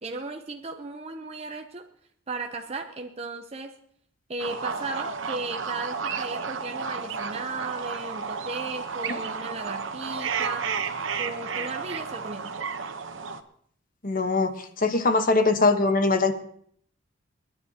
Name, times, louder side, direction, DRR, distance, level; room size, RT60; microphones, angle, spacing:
voice 1, 0.0-1.9 2.3-3.8 4.3-12.6, right 3 dB, 30° right, 4 dB, 0.6 m, -36 dB
sound 1, 4.4-13.4, right 5 dB, 75° right, 0.9 m, -32 dB
voice 2, 14.0-16.3, left 3 dB, 45° left, 8 dB, 1.1 m, -22 dB
29.5 x 10.0 x 2.8 m, 0.66 s
head